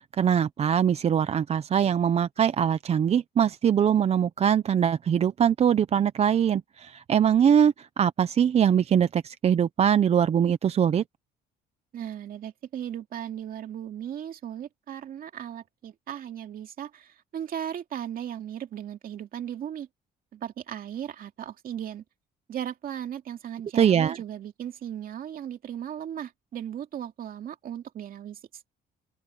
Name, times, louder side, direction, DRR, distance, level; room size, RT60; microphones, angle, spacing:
voice 1, 0.2-11.0 23.7-24.2, right 8 dB, 35° right, 0.6 m, -22 dB
voice 2, 11.9-19.9 20.3-22.0 22.5-28.4, right 10 dB, 55° right, 2.5 m, -36 dB
open air
cardioid pair, 125°, 17 cm